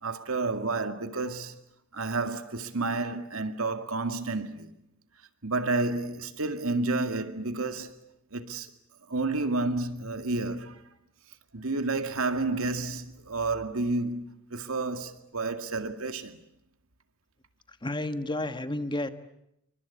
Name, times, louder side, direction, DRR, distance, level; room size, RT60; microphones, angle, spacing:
voice 1, 0.0-1.6 1.9-4.7 5.4-8.0 8.3-8.7 9.1-10.8 11.5-16.4, right 3 dB, 90° right, 2.1 m, -30 dB
voice 2, 17.8-19.1, left 1 dB, 20° left, 1.4 m, -31 dB
28.0 x 24.5 x 8.4 m
head